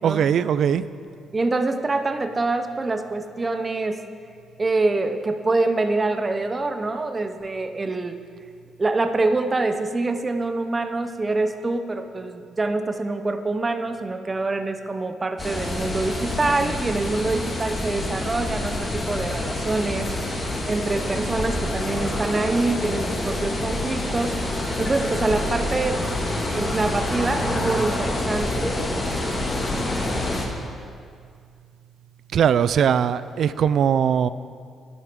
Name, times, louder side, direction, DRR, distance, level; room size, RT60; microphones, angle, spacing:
voice 1, 0.0-0.8 32.3-34.3, right 8 dB, 65° right, 15 dB, 0.4 m, -20 dB
voice 2, 1.3-4.1 4.6-8.2 8.8-20.1 20.7-24.4 24.8-26.0 26.6-28.7, right 3 dB, 25° right, 8 dB, 0.8 m, -25 dB
sound 1, 15.4-30.5, left 1 dB, 30° left, 2.4 m, -27 dB
12.0 x 11.0 x 5.3 m, 2.2 s
cardioid pair, 90°, 0 cm